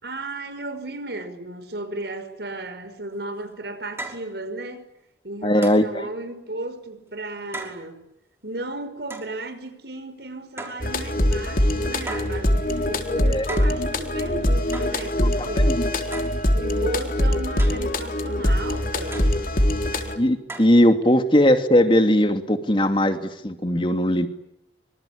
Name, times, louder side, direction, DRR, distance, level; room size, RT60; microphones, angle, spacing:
voice 1, 0.0-4.9 5.2-8.1 8.4-15.8 16.5-19.4, right 2 dB, 70° right, 5.6 m, -34 dB
sound 1, 3.1-3.2 4.0-4.3 5.6-5.9 7.5-7.8 9.1-9.3 10.6-10.9 12.1-12.4 13.5-13.8 14.7-15.0 16.1-16.4 17.6-17.9 19.1-19.4 20.5-20.8, right 2 dB, 15° right, 5.6 m, -36 dB
voice 2, 5.4-6.1 13.1-13.5 15.2-15.9 20.2-24.3, left 1 dB, 30° left, 2.6 m, -19 dB
sound 2, 10.8-20.2, left 1 dB, 50° left, 4.0 m, -23 dB
26.0 x 26.0 x 8.7 m
head